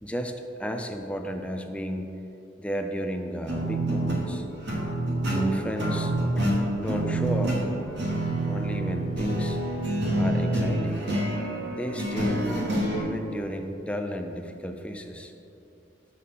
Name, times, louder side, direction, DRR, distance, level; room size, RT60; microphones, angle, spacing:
voice 1, 0.0-2.1 2.6-4.5 5.3-6.4 6.7-7.6 8.5-9.6 10.1-11.1 11.7-12.7 13.0-15.3, equal, 5° left, 5 dB, 0.4 m, -33 dB
sound 1, 3.5-13.0, right 1 dB, 65° right, 1.2 m, -27 dB
6.5 x 4.0 x 5.4 m, 2.8 s
head